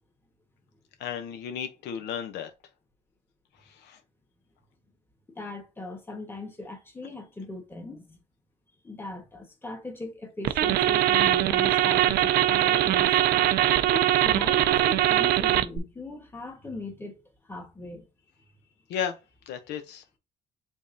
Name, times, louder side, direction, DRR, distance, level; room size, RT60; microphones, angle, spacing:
voice 1, 1.0-2.5 3.7-4.0 18.9-19.2 19.5-20.0, left 8 dB, 80° left, 0.7 m, -34 dB
voice 2, 5.3-8.2 8.8-13.2 13.9-17.2 17.5-18.1, left 2 dB, 15° left, 1.4 m, -39 dB
sound 1, 10.4-15.8, right 13 dB, 70° right, 0.4 m, -22 dB
5.2 x 3.5 x 2.6 m
cardioid pair, 110°, 17 cm